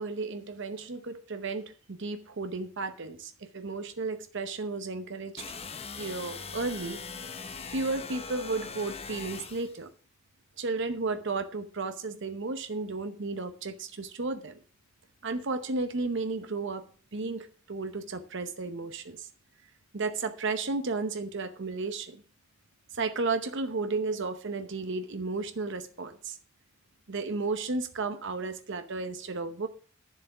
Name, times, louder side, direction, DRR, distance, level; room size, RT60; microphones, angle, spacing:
voice 1, 0.0-5.4 6.0-7.0 7.7-9.9 10.6-14.6 15.2-16.9 17.1-19.3 19.9-22.2 22.9-26.4 27.1-29.7, right 3 dB, 60° right, 0.9 m, -33 dB
sound 1, 5.4-9.8, left 5 dB, 30° left, 0.9 m, -41 dB
10.5 x 7.4 x 6.0 m
head